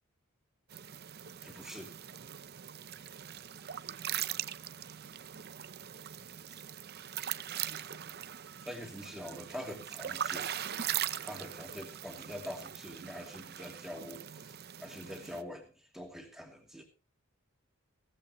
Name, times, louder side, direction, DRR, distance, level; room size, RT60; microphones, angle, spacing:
sound 1, 0.7-15.4, right 10 dB, 50° right, 0.7 m, -41 dB
voice 1, 1.4-1.9 6.5-6.6 8.6-10.5 11.2-16.8, equal, ahead, 2 dB, 2.6 m, -45 dB
17.0 x 14.5 x 3.1 m, 0.31 s
head